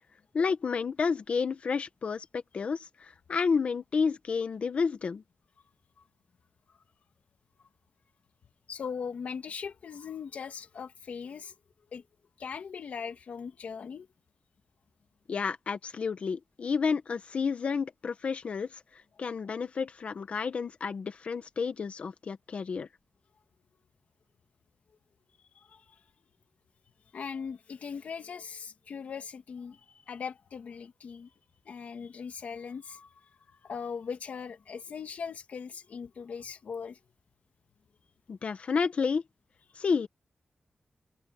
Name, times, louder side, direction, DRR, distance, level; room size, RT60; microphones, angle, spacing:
voice 1, 0.3-5.2 15.3-18.7 19.2-22.9 38.3-39.2 39.8-40.1, left 5 dB, 60° left, 1.8 m, -30 dB
voice 2, 8.7-11.5 11.9-12.0 12.4-14.1 25.5-25.8 27.1-31.3 31.7-33.3 33.6-37.0, left 6 dB, 85° left, 2.6 m, -40 dB
wide cardioid pair, 165°, 2 cm